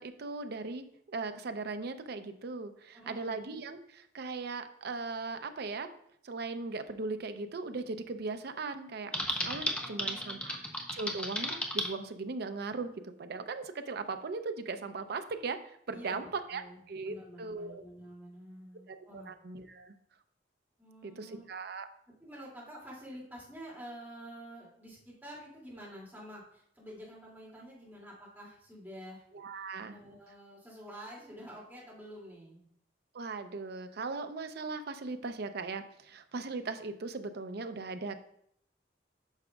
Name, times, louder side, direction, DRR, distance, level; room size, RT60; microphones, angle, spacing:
voice 1, 0.0-5.9 6.2-10.6 10.9-17.8 18.9-19.9 21.0-21.9 29.3-30.0 33.1-38.1, right 3 dB, 60° right, 9 dB, 0.5 m, -38 dB
voice 2, 2.9-3.4 9.8-10.9 15.9-19.3 20.8-21.5 22.2-29.2 29.9-32.7, equal, 10° right, -6 dB, 2.4 m, -49 dB
Typing, 9.1-11.9, left 1 dB, 5° left, 0.6 m, -34 dB
8.9 x 5.9 x 2.3 m, 0.70 s
head